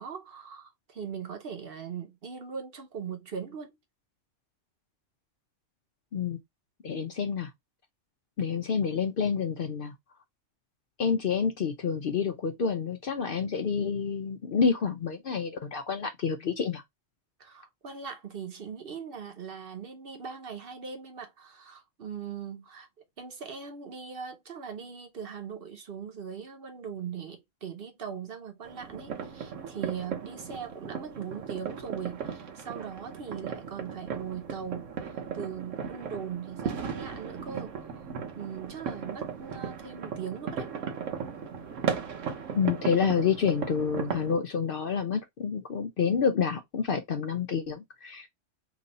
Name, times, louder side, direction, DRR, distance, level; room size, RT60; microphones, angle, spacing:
voice 1, 0.0-3.7 17.4-22.9 23.2-37.9 38.4-40.7, right 7 dB, 55° right, 0.9 m, -40 dB
voice 2, 6.8-7.5 8.4-9.9 11.0-16.8 42.5-48.3, left 6 dB, 55° left, 0.7 m, -28 dB
sound 1, 28.6-44.3, right 6 dB, 80° right, 1.2 m, -36 dB
3.0 x 2.6 x 3.9 m
omnidirectional pair, 1.3 m